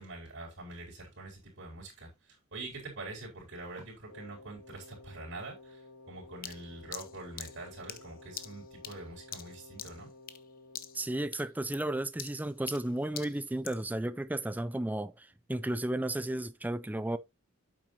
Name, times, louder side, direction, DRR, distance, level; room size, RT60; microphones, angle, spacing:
voice 1, 0.0-10.1, right 2 dB, 60° right, 4.3 m, -45 dB
Wind instrument woodwind instrument, 4.1-11.4, left 2 dB, 75° left, 3.1 m, -54 dB
sound 1, 6.4-10.5 10.7-11.1 11.3-13.9, left 10 dB, 40° left, 0.9 m, -45 dB
voice 2, 10.9-17.2, right 1 dB, 10° right, 0.4 m, -33 dB
9.1 x 7.5 x 2.8 m
head